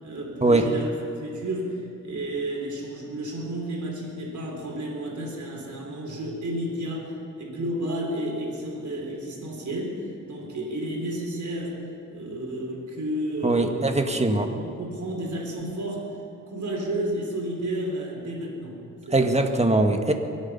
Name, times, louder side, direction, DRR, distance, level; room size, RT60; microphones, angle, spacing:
voice 1, 0.0-0.9 1.2-7.1 7.4-11.8 12.1-13.9 14.3-16.1 16.5-19.3, right 1 dB, 70° right, -2 dB, 3.9 m, -32 dB
voice 2, 13.4-14.5 19.1-20.1, right 2 dB, 20° right, 5 dB, 1.7 m, -21 dB
24.0 x 8.3 x 5.7 m, 2.7 s
cardioid pair, 60°, 30 cm